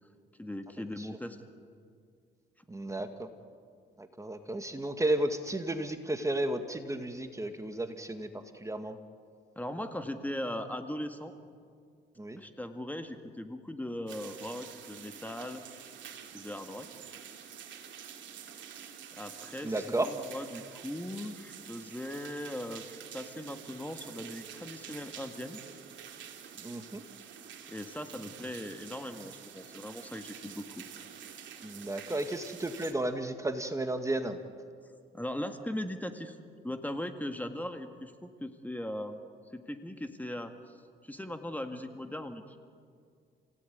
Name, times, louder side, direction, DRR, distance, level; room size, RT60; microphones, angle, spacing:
voice 1, 0.4-1.4 9.6-11.3 12.4-15.6 16.3-16.9 19.1-25.6 27.7-30.8 35.1-36.4 36.6-39.2 39.5-40.8 41.0-42.6, left 1 dB, 10° left, 6 dB, 1.8 m, -39 dB
voice 2, 2.7-3.3 4.0-8.3 8.6-9.0 12.2-12.4 19.6-20.1 26.6-27.0 31.6-34.4, right 1 dB, 15° right, 7 dB, 1.8 m, -33 dB
sound 1, 14.1-32.9, right 8 dB, 70° right, 2.8 m, -48 dB
29.5 x 17.5 x 9.4 m, 2.2 s
cardioid pair, 90°, 20 cm